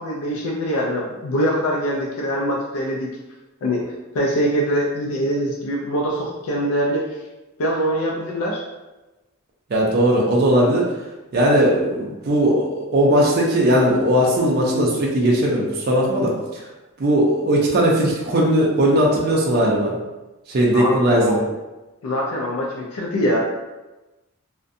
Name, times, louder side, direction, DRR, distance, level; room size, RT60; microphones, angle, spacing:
voice 1, 0.0-3.1 3.6-3.8 4.1-7.0 7.6-8.6 20.7-21.4 22.0-23.4, equal, 75° left, -2 dB, 0.4 m, -23 dB
voice 2, 9.7-10.8 11.3-16.6 17.0-20.0 20.5-21.4, right 1 dB, 45° right, -3 dB, 0.4 m, -18 dB
2.5 x 2.1 x 2.6 m, 1.1 s
head